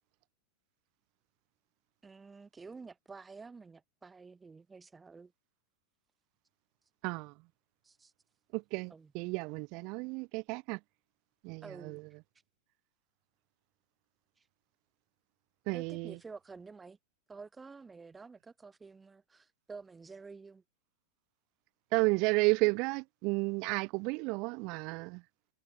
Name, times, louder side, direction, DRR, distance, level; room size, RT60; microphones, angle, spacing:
voice 1, 2.0-5.3 7.8-8.1 8.9-9.1 11.6-12.0 15.7-17.0 17.3-20.6, right 4 dB, 15° right, 5.2 m, -50 dB
voice 2, 7.0-7.3 8.5-10.8 11.4-12.0 15.7-16.2 21.9-25.2, right 28 dB, 45° right, 0.6 m, -32 dB
figure-of-eight pair, 90°, 0 cm